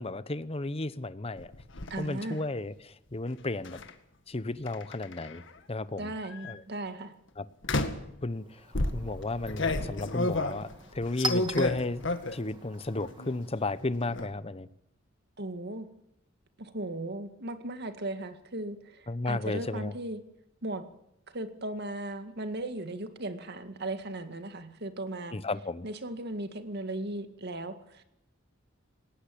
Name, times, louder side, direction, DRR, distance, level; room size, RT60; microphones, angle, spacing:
voice 1, 0.0-1.5 2.0-3.8 4.3-5.4 5.7-6.1 6.4-6.6 7.4-7.5 8.2-8.6 8.9-12.0 12.3-14.7 19.1-19.9 25.3-25.9, left 2 dB, 30° left, 15 dB, 0.9 m, -33 dB
sound 1, 1.4-1.9 3.7-3.9 4.7-5.5 6.2-6.5 7.6-8.1 8.7-12.5 12.9-13.4 13.7-14.3, left 2 dB, 65° left, 2.0 m, -32 dB
voice 2, 1.9-2.4 6.0-7.1 15.4-15.9 16.6-20.2 20.6-20.9 21.3-25.4 25.8-28.0, right 1 dB, 55° right, 9 dB, 2.1 m, -37 dB
Chink clink, 8.3-13.8, right 2 dB, 25° right, 2.3 m, -42 dB
19.0 x 18.5 x 8.6 m, 0.80 s
head